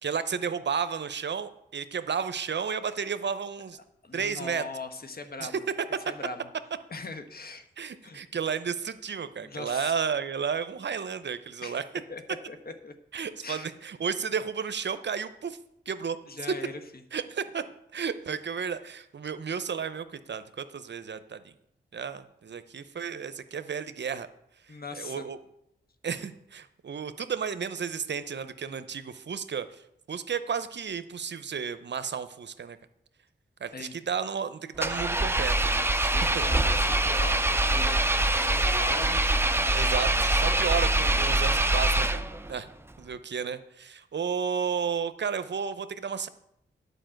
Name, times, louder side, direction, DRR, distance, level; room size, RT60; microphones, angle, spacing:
voice 1, 0.0-3.8 4.1-4.6 5.4-5.5 7.8-11.8 13.1-15.6 15.9-16.2 17.1-17.6 17.9-21.5 21.9-24.3 25.0-25.4 26.0-29.8 30.1-32.8 33.6-36.4 39.7-42.7 43.0-46.3, right 6 dB, 60° right, 12 dB, 0.7 m, -32 dB
voice 2, 4.0-5.6 6.0-6.5 6.9-7.7 8.0-8.2 9.4-9.9 11.6-11.8 12.1-12.2 12.5-12.9 13.4-13.6 16.3-16.8 24.7-25.3 33.7-33.9 36.1-39.2, left 3 dB, 50° left, 7 dB, 1.3 m, -40 dB
Engine, 34.8-42.5, right 1 dB, 10° right, 0.7 m, -24 dB
10.0 x 5.2 x 7.7 m, 0.80 s
cardioid pair, 45°, 20 cm